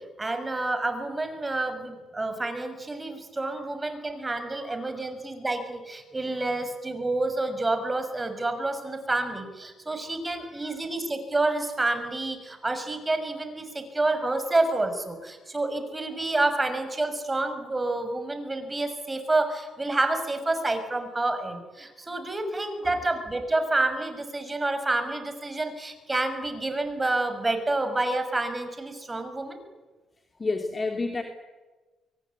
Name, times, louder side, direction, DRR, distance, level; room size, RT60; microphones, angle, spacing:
voice 1, 0.2-29.6, right 2 dB, 20° right, 8 dB, 6.2 m, -28 dB
voice 2, 10.4-10.8 22.8-23.0 30.4-31.2, left 3 dB, 30° left, 4 dB, 3.0 m, -31 dB
25.5 x 23.5 x 9.7 m, 1.2 s
cardioid pair, 90°, 0 cm